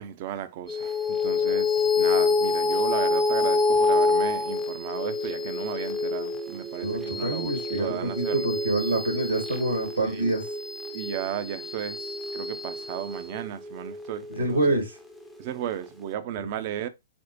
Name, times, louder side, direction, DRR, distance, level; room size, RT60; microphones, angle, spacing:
voice 1, 0.0-8.5 10.0-10.4 10.9-14.8 15.4-16.9, right 11 dB, 40° right, 0.5 m, -35 dB
sound 1, 0.7-15.4, left 3 dB, 5° left, 0.6 m, -27 dB
voice 2, 6.8-10.4 14.3-14.9 16.4-16.5, right 2 dB, 75° right, 1.6 m, -26 dB
4.3 x 2.1 x 2.9 m
figure-of-eight pair, 115°, 0 cm